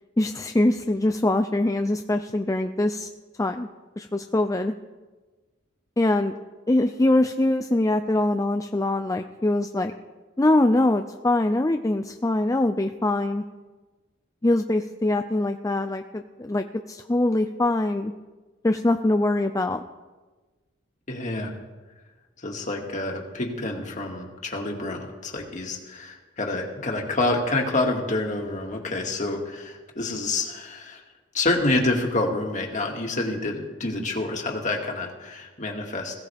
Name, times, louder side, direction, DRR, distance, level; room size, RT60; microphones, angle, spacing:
voice 1, 0.2-3.1 3.4-3.7 4.0-4.7 6.0-6.3 6.7-9.9 10.4-13.4 14.4-18.1 18.6-19.8, left 1 dB, 15° left, 6 dB, 0.5 m, -23 dB
voice 2, 21.1-21.5 22.4-31.0 31.3-36.1, left 2 dB, 40° left, 1 dB, 2.2 m, -28 dB
21.0 x 16.5 x 3.5 m, 1.3 s
head